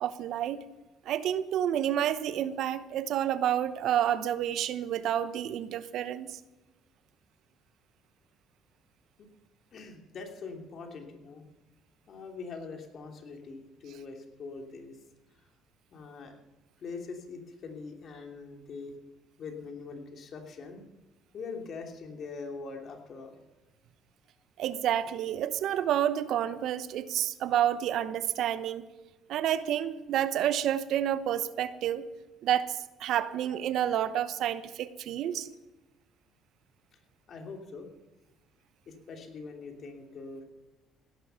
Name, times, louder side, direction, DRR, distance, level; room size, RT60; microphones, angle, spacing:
voice 1, 0.0-0.6 1.1-6.4 24.6-28.9 29.3-32.1 32.4-35.5, right 10 dB, 70° right, 14 dB, 0.9 m, -29 dB
voice 2, 9.7-11.4 12.1-15.0 15.9-16.3 16.8-18.9 19.4-20.8 21.3-23.4 36.9-37.0 37.3-37.9 38.9-40.4, left 4 dB, 55° left, 3 dB, 3.1 m, -43 dB
16.5 x 11.5 x 5.7 m, 1.1 s
hypercardioid pair, 60°, 0 cm